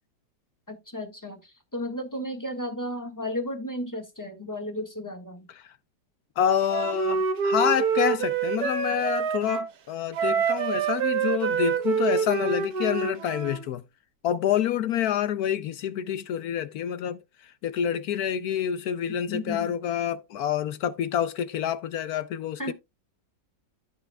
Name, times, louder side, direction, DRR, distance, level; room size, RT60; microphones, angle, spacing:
voice 1, 0.7-5.5 19.3-19.8 22.6-22.7, left 1 dB, 10° left, 1.4 m, -34 dB
voice 2, 6.4-13.8 14.2-22.7, left 9 dB, 70° left, 1.0 m, -27 dB
Wind instrument woodwind instrument, 6.7-9.7 10.1-13.6, right 6 dB, 60° right, 1.5 m, -26 dB
14.0 x 5.6 x 2.2 m
omnidirectional pair, 1.9 m